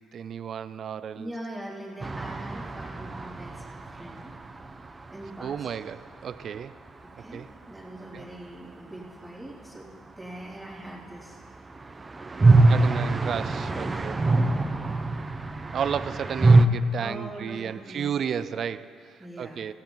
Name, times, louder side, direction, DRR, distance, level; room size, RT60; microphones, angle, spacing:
voice 1, 0.0-1.3 5.4-6.8 7.3-7.5 8.1-8.2 12.7-14.2 15.7-19.7, right 8 dB, 60° right, 15 dB, 0.5 m, -33 dB
voice 2, 1.1-4.3 5.1-5.7 7.0-9.9 10.2-11.4 11.9-12.0 12.4-12.9 13.6-15.1 17.0-18.1 19.2-19.6, right 1 dB, 5° right, -5 dB, 3.5 m, -42 dB
sound 1, 2.0-5.8 6.1-6.2 6.3-6.4 11.5-16.7, right 2 dB, 30° right, 0.9 m, -23 dB
17.0 x 16.0 x 4.0 m, 2.3 s
supercardioid pair, 60°, 0 cm